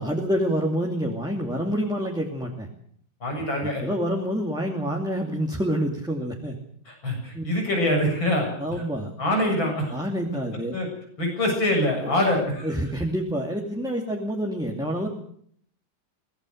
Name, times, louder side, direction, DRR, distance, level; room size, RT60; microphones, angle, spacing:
voice 1, 0.0-2.7 3.4-3.5 3.8-6.6 7.3-7.4 8.6-9.1 9.9-10.7 12.0-12.2 12.6-15.1, equal, ahead, 0 dB, 2.5 m, -27 dB
voice 2, 3.2-3.8 6.9-8.5 9.2-9.9 10.7-10.9 11.2-12.7, left 1 dB, 90° left, 2 dB, 8.3 m, -24 dB
23.0 x 19.0 x 6.6 m, 0.63 s
omnidirectional pair, 2.1 m